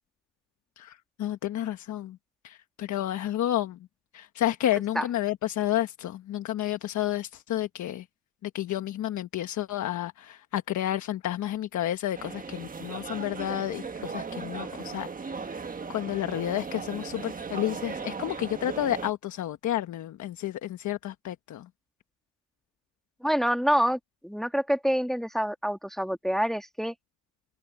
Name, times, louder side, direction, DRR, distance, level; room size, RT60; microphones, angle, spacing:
voice 1, 0.8-2.2 2.4-3.8 4.1-8.0 8.4-15.1 15.9-21.7, left 12 dB, 70° left, 1.3 m, -31 dB
sound 1, 12.1-19.1, right 5 dB, 30° right, 1.4 m, -37 dB
voice 2, 23.2-26.9, equal, ahead, 1.8 m, -27 dB
cardioid pair, 90°, 30 cm